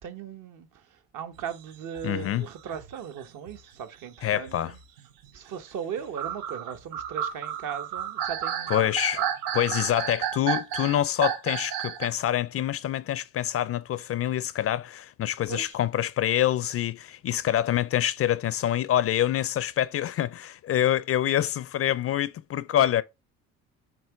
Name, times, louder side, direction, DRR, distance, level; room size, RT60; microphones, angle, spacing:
voice 1, 0.0-4.8 5.3-9.3 15.5-15.8, right 8 dB, 60° right, 1.1 m, -38 dB
sound 1, 1.4-3.6 4.2-5.3 6.0-12.2, right 9 dB, 85° right, 1.0 m, -32 dB
voice 2, 2.0-2.4 4.2-4.7 8.7-9.2 9.5-23.0, left 11 dB, 40° left, 0.4 m, -26 dB
7.5 x 3.0 x 4.6 m
cardioid pair, 115°, 35 cm